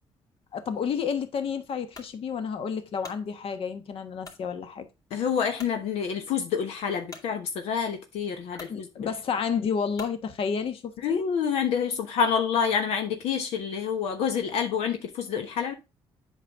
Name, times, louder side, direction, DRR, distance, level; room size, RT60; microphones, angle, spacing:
voice 1, 0.5-4.9 8.5-11.2, left 6 dB, 65° left, 1.3 m, -31 dB
sound 1, 1.9-2.2 2.7-3.2 4.2-4.5 5.0-5.1 5.6-5.8 7.1-7.3 8.1-8.2 8.5-8.8 9.9-10.2, left 3 dB, 35° left, 2.3 m, -45 dB
voice 2, 5.1-9.1 11.0-15.7, left 7 dB, 90° left, 1.1 m, -28 dB
8.0 x 5.9 x 3.5 m
cardioid pair, 100°, 10 cm